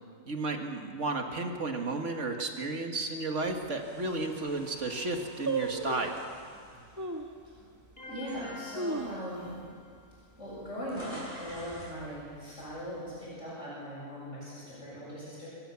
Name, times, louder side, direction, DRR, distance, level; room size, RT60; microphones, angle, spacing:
voice 1, 0.3-6.2, right 2 dB, 60° right, 3 dB, 2.1 m, -33 dB
sound 1, 3.4-3.5 4.1-4.2 4.5-4.8 5.5-6.2 7.0-7.4 7.9-8.0 8.5-9.6 9.9-10.0 10.4-10.7 11.1-11.5 12.1-12.9 13.1-13.2, right 3 dB, 15° right, 1.4 m, -35 dB
sound 2, 3.8-8.0 8.5-8.7 9.6-9.7 9.9-12.0, equal, 20° left, 6.8 m, -49 dB
sound 3, 8.0-10.1, left 2 dB, 45° left, 3.3 m, -47 dB
voice 2, 8.1-9.6 10.4-15.5, equal, 60° left, -8 dB, 7.9 m, -40 dB
24.5 x 15.0 x 7.1 m, 2.1 s
omnidirectional pair, 1.4 m